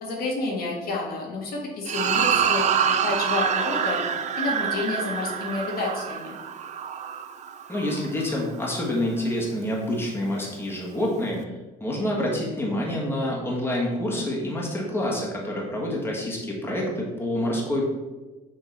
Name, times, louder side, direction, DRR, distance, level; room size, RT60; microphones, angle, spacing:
voice 1, 0.0-4.0 4.4-6.3, left 3 dB, 65° left, -2 dB, 1.6 m, -30 dB
sound 1, 1.9-8.4, right 7 dB, 45° right, 0.5 m, -26 dB
voice 2, 7.7-11.5 11.8-17.8, left 1 dB, 15° left, -3 dB, 1.5 m, -27 dB
6.2 x 3.8 x 4.0 m, 1.2 s
cardioid pair, 110°, 17 cm